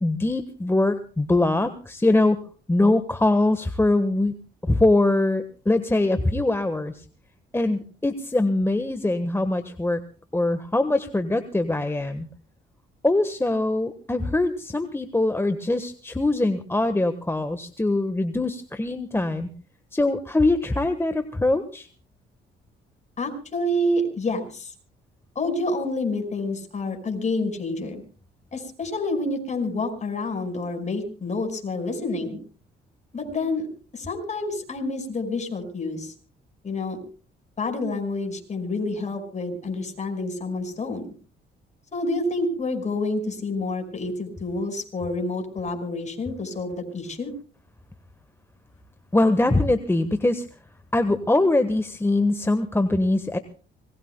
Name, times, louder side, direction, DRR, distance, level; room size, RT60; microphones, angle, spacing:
voice 1, 0.0-2.4 2.7-4.4 4.6-6.9 7.5-10.0 10.3-12.3 13.0-19.5 19.9-21.9 49.1-50.4 50.9-53.4, left 2 dB, 10° left, 8 dB, 1.4 m, -22 dB
voice 2, 23.2-24.7 25.4-28.0 28.5-32.4 33.1-33.7 33.9-36.1 36.6-37.0 37.6-41.1 41.9-47.3, left 2 dB, 35° left, 5 dB, 5.3 m, -28 dB
25.5 x 20.5 x 2.3 m, 0.39 s
cardioid pair, 90°, 20 cm